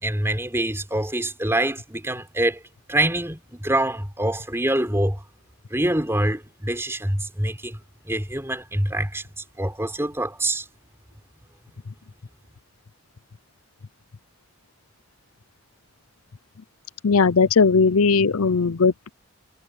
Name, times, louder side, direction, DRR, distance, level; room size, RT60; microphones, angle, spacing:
voice 1, 0.0-2.6 2.9-5.2 5.7-7.8 8.1-9.2 9.6-10.6, right 1 dB, 10° right, 4.2 m, -25 dB
voice 2, 17.0-19.1, left 5 dB, 70° left, 0.6 m, -18 dB
head